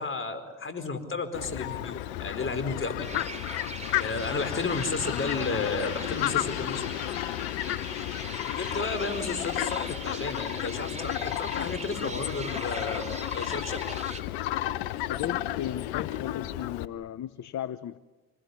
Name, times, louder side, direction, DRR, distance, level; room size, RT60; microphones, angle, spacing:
voice 1, 0.0-3.1 4.0-6.9 8.5-13.8, left 3 dB, 40° left, 10 dB, 4.6 m, -32 dB
Fowl, 1.3-16.9, left 14 dB, 90° left, 0.8 m, -32 dB
sound 1, 3.0-14.2, right 3 dB, 20° right, 3.0 m, -42 dB
voice 2, 15.1-18.0, left 11 dB, 60° left, 15 dB, 0.9 m, -35 dB
26.5 x 19.5 x 9.7 m, 1.2 s
hypercardioid pair, 50°, 32 cm